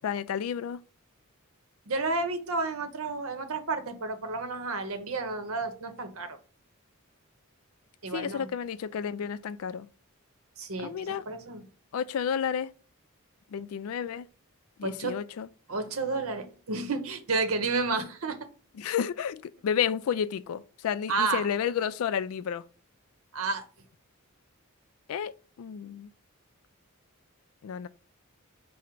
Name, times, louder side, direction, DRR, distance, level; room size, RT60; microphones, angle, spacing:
voice 1, 0.0-0.8 8.1-9.9 10.8-11.2 11.9-12.7 13.5-14.3 14.8-15.5 18.8-22.6 25.1-26.1 27.6-27.9, left 8 dB, 70° left, 0.3 m, -31 dB
voice 2, 1.9-6.4 8.0-8.5 10.6-11.6 14.8-15.1 15.7-18.4 21.1-21.5 23.3-23.6, right 3 dB, 70° right, 0.8 m, -31 dB
4.9 x 2.1 x 4.4 m
head